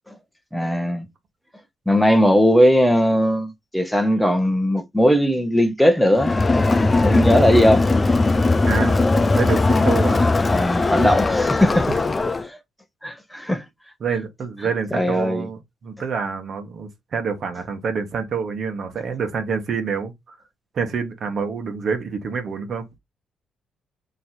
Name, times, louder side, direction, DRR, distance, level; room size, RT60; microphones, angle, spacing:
voice 1, 0.5-1.0 1.9-6.3 7.0-7.8 10.5-11.9 12.4-12.6 13.0-13.6 14.9-15.5, equal, ahead, 0.9 m, -18 dB
Crowd, 6.2-12.5, left 3 dB, 25° left, 0.5 m, -19 dB
voice 2, 8.6-10.3 11.6-11.7 14.0-20.4 20.7-22.9, right 5 dB, 55° right, 1.2 m, -27 dB
4.3 x 3.1 x 2.7 m
cardioid pair, 90°, 0 cm